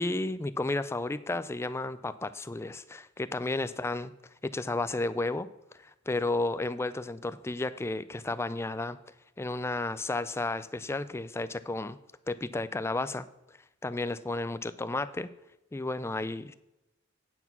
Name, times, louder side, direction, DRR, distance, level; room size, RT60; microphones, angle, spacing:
voice 1, 0.0-4.1 4.4-5.5 5.7-9.0 9.4-12.0 12.3-13.3 13.8-15.3 15.7-16.5, left 2 dB, 10° left, 14 dB, 0.3 m, -32 dB
9.1 x 6.0 x 5.8 m, 0.92 s
head